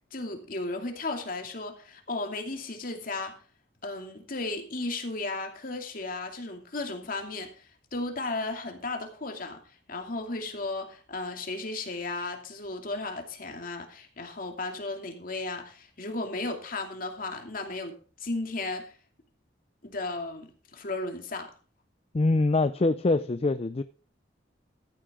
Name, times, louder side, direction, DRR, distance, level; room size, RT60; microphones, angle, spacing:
voice 1, 0.1-3.4 3.8-9.6 9.9-18.9 19.8-21.5, left 2 dB, 50° left, 2.6 m, -35 dB
voice 2, 22.1-23.8, left 2 dB, 35° left, 0.5 m, -24 dB
14.0 x 8.7 x 3.7 m
head